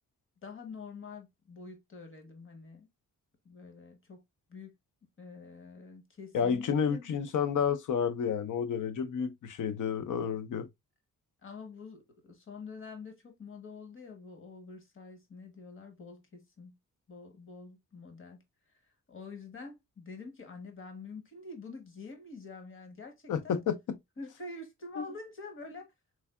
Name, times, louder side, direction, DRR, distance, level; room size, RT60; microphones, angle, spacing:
voice 1, 0.4-2.9 3.4-4.2 4.5-4.7 5.2-7.1 11.4-16.8 17.1-18.4 19.1-23.6 24.2-25.9, left 4 dB, 40° left, 1.0 m, -46 dB
voice 2, 6.3-10.7 23.3-24.0 25.0-25.1, left 7 dB, 70° left, 0.5 m, -30 dB
3.5 x 3.2 x 2.2 m
wide cardioid pair, 140°, 32 cm